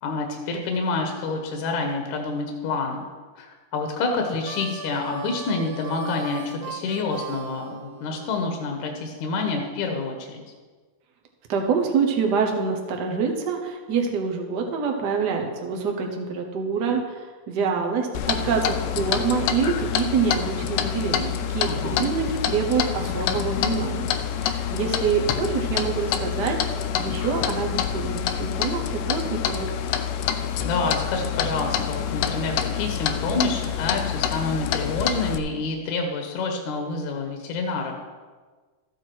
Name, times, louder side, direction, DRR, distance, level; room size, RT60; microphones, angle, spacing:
voice 1, 0.0-3.0 3.4-3.5 3.7-10.4 21.6-22.0 30.6-38.0, left 3 dB, 70° left, 2 dB, 2.4 m, -28 dB
Harmonica, 4.2-8.5, right 6 dB, 80° right, 2.3 m, -38 dB
voice 2, 11.5-26.6 26.9-29.7, right 5 dB, 65° right, 2 dB, 1.0 m, -26 dB
Clock, 18.1-35.4, left 9 dB, 90° left, 2.3 m, -27 dB
13.5 x 8.0 x 4.6 m, 1.4 s
omnidirectional pair, 3.6 m